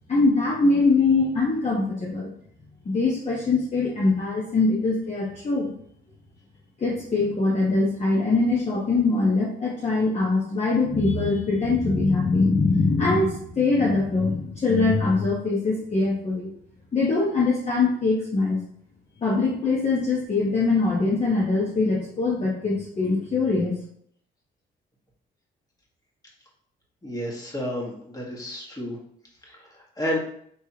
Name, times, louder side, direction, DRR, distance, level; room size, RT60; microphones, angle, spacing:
voice 1, 0.1-2.3 2.8-5.7 6.8-16.5 16.9-18.6 19.2-23.8, left 3 dB, 35° left, -5 dB, 1.0 m, -22 dB
voice 2, 27.0-29.0 29.4-30.2, left 1 dB, 20° left, -3 dB, 1.4 m, -31 dB
4.6 x 3.3 x 2.8 m, 0.67 s
cardioid pair, 90°, 20 cm